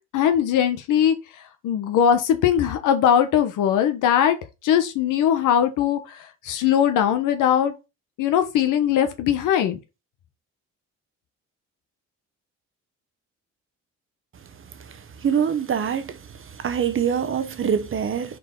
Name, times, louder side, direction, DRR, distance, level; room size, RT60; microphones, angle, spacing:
voice 1, 0.1-1.1 1.6-4.4 4.6-7.7 8.2-9.8, left 9 dB, 90° left, 1.3 m, -20 dB
voice 2, 15.2-16.2 16.6-18.4, right 7 dB, 45° right, 0.9 m, -24 dB
4.9 x 4.2 x 5.4 m
cardioid pair, 90°, 30 cm